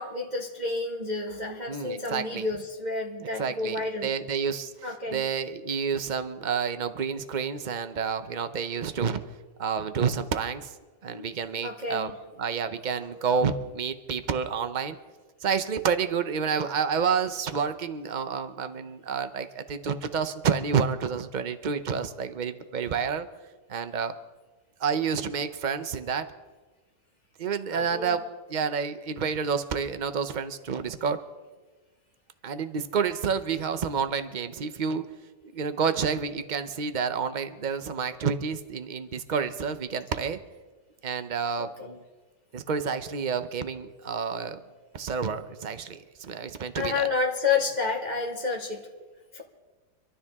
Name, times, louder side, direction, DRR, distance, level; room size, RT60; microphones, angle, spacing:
voice 1, 0.0-4.1 4.8-5.2 11.1-11.3 11.6-12.1 27.7-28.1 41.6-42.0 46.7-48.9 49.3-49.4, left 4 dB, 25° right, -2 dB, 1.4 m, -30 dB
voice 2, 1.7-2.5 3.2-9.2 9.6-10.7 11.0-12.1 12.4-15.0 15.4-23.3 23.7-24.1 24.8-26.3 27.4-28.2 28.5-31.2 32.4-35.0 35.5-40.4 41.0-41.7 42.5-44.6 44.9-47.1, right 6 dB, 55° right, 10 dB, 0.5 m, -29 dB
26.0 x 12.5 x 3.6 m, 1.3 s
omnidirectional pair, 2.0 m